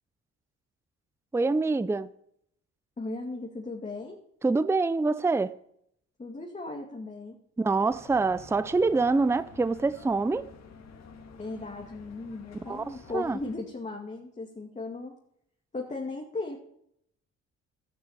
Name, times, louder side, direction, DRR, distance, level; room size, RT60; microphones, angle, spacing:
voice 1, 1.3-2.1 4.4-5.6 7.6-10.5 12.7-13.4, right 3 dB, 10° right, 0.5 m, -26 dB
voice 2, 3.0-4.2 6.2-7.3 11.4-15.1 15.7-16.6, left 2 dB, 25° left, 2.3 m, -37 dB
sound 1, 7.9-13.6, left 4 dB, 60° left, 2.6 m, -50 dB
12.5 x 9.9 x 7.1 m
cardioid pair, 90°, 30 cm